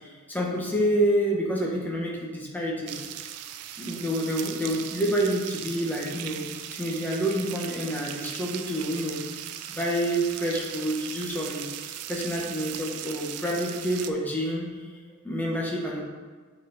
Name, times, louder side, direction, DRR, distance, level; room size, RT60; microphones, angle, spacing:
voice 1, 0.0-3.0 3.8-6.4 6.7-9.2 9.7-11.6 12.1-14.7 15.2-16.0, equal, 10° left, -3 dB, 1.2 m, -28 dB
sound 1, 2.9-14.1, right 10 dB, 85° right, 0.4 m, -38 dB
8.3 x 4.3 x 4.1 m, 1.5 s
head